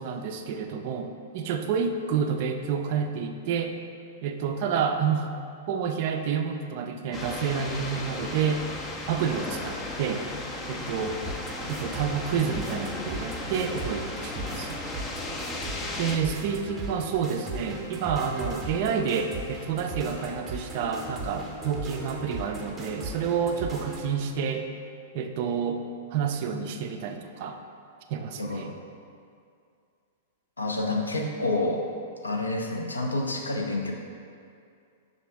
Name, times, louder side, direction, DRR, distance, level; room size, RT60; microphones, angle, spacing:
voice 1, 0.0-3.8 4.2-5.3 5.7-8.7 9.1-10.2 10.7-11.2 11.7-14.8 16.0-24.7 25.1-25.8 26.1-27.6 28.1-28.7, right 6 dB, 50° right, 5 dB, 0.3 m, -29 dB
sound 1, 7.1-16.2, left 2 dB, 20° left, 0.4 m, -35 dB
sound 2, 11.2-24.2, right 2 dB, 10° right, 0.7 m, -38 dB
voice 2, 28.4-28.8 30.6-31.8 32.2-33.9, left 2 dB, 80° left, 1 dB, 0.5 m, -28 dB
5.8 x 2.5 x 3.4 m, 2.4 s
figure-of-eight pair, 100°, 0 cm